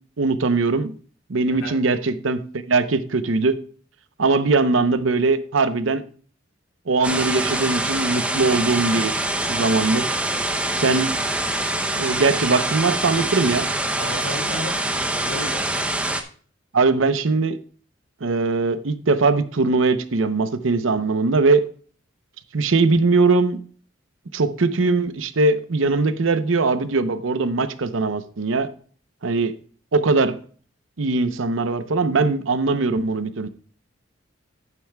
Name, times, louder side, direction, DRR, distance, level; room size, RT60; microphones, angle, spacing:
voice 1, 0.2-0.9 1.3-2.4 2.7-3.6 4.2-6.0 6.9-9.1 9.5-10.1 10.7-11.1 11.9-13.7 16.7-17.6 18.2-21.7 22.5-23.6 24.3-28.7 29.2-29.5 29.9-30.4 31.0-33.5, right 3 dB, 80° right, 0.7 m, -20 dB
sound 1, 7.0-16.2, right 1 dB, 5° right, 0.6 m, -25 dB
voice 2, 14.0-15.7, left 1 dB, 90° left, 2.8 m, -33 dB
10.5 x 9.2 x 2.3 m
head